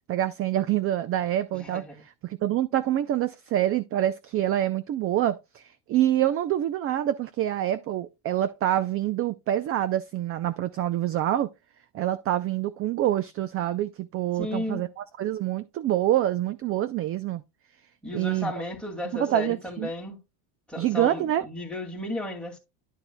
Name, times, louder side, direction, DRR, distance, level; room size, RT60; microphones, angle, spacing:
voice 1, 0.1-1.8 2.2-11.5 11.9-14.9 15.2-17.4 18.1-18.5 19.1-19.9 20.8-21.4, right 12 dB, 30° right, 0.5 m, -26 dB
voice 2, 1.5-2.0 14.3-14.8 18.0-20.2 20.7-22.6, left 1 dB, ahead, 2.2 m, -34 dB
11.0 x 6.8 x 2.2 m
supercardioid pair, 130°, 44 cm